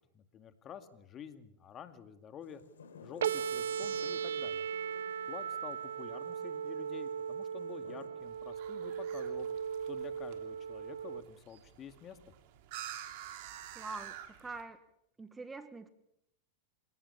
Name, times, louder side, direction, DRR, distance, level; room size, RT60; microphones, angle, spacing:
voice 1, 0.1-2.6 3.0-4.7 5.3-9.5 9.9-12.2, left 8 dB, 30° left, 9 dB, 2.3 m, -49 dB
sound 1, 2.4-8.1, left 5 dB, 90° left, 3.8 m, -56 dB
sound 2, 3.2-11.2, right 7 dB, 80° right, 0.9 m, -37 dB
sound 3, 8.2-14.6, right 11 dB, 60° right, 3.1 m, -49 dB
voice 2, 13.7-14.8 15.2-15.9, right 3 dB, 15° right, 11 dB, 1.6 m, -44 dB
28.0 x 18.0 x 7.2 m, 0.78 s
hypercardioid pair, 110°, 0 cm